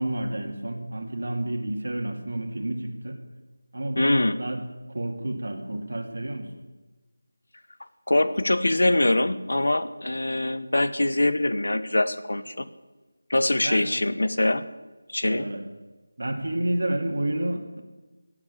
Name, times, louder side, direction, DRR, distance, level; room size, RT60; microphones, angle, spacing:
voice 1, 0.0-3.2 3.7-4.6 4.9-6.5 13.6-13.9 15.2-15.6 16.2-17.8, right 1 dB, 60° right, 3 dB, 2.1 m, -30 dB
voice 2, 4.0-4.4 8.1-12.7 13.3-14.6 15.1-15.5, left 1 dB, 70° left, 13 dB, 1.1 m, -23 dB
17.0 x 7.3 x 8.4 m, 1.2 s
figure-of-eight pair, 180°, 0 cm